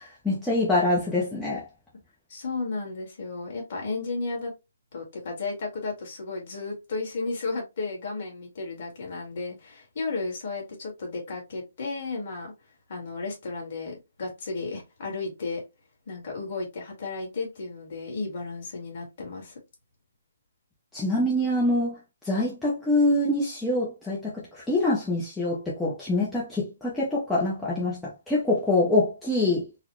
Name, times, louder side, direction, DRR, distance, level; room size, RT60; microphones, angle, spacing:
voice 1, 0.0-1.7 20.9-29.8, left 2 dB, 5° left, 0.5 m, -25 dB
voice 2, 2.3-4.5 4.9-12.5 12.9-15.6 16.1-19.6, left 3 dB, 35° left, 1.6 m, -33 dB
3.9 x 2.1 x 2.9 m
hypercardioid pair, 180°, 0 cm